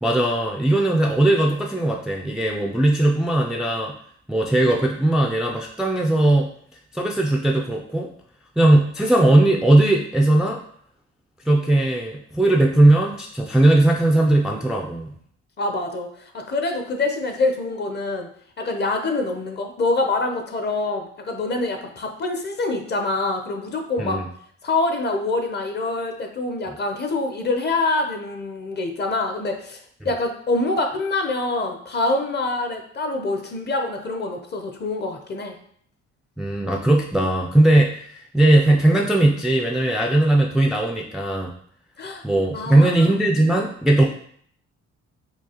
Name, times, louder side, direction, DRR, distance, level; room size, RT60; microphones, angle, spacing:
voice 1, 0.0-3.9 4.3-6.5 6.9-8.1 8.6-10.6 11.5-15.1 24.0-24.3 36.4-41.5 42.2-44.0, right 1 dB, ahead, 0 dB, 0.3 m, -18 dB
voice 2, 15.6-18.3 18.6-24.2 24.6-35.5 42.0-42.2 42.5-43.2, left 2 dB, 35° left, 4 dB, 0.7 m, -25 dB
4.6 x 2.4 x 2.9 m, 0.63 s
cardioid pair, 90°, 30 cm